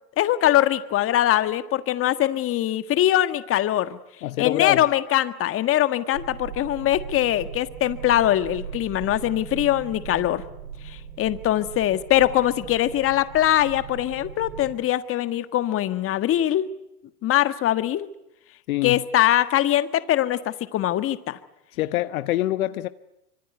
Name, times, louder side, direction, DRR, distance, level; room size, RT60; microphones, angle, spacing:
voice 1, 0.2-4.0 4.4-10.4 10.8-16.7 17.2-18.1 18.8-21.4, left 13 dB, 30° left, 12 dB, 1.6 m, -22 dB
voice 2, 4.2-4.8 18.7-19.0 21.8-22.9, left 15 dB, 65° left, 13 dB, 1.1 m, -25 dB
sound 1, 6.1-14.8, right 7 dB, 80° right, 4.4 m, -39 dB
25.0 x 24.5 x 9.4 m, 0.86 s
hypercardioid pair, 120°, 46 cm